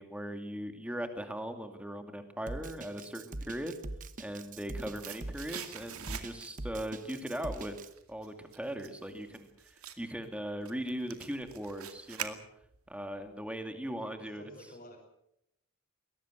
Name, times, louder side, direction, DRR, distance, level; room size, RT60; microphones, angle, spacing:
voice 1, 0.0-3.7 4.2-7.8 8.1-12.4 12.9-14.4, equal, 5° right, 7 dB, 2.4 m, -39 dB
Drum kit, 2.5-7.9, right 2 dB, 35° right, 1.2 m, -42 dB
sound 1, 4.5-6.7 7.0-12.9 13.2-13.3, right 9 dB, 80° right, 2.3 m, -45 dB
voice 2, 13.6-15.0, left 1 dB, 35° left, -5 dB, 5.5 m, -53 dB
22.0 x 19.0 x 7.9 m, 0.78 s
head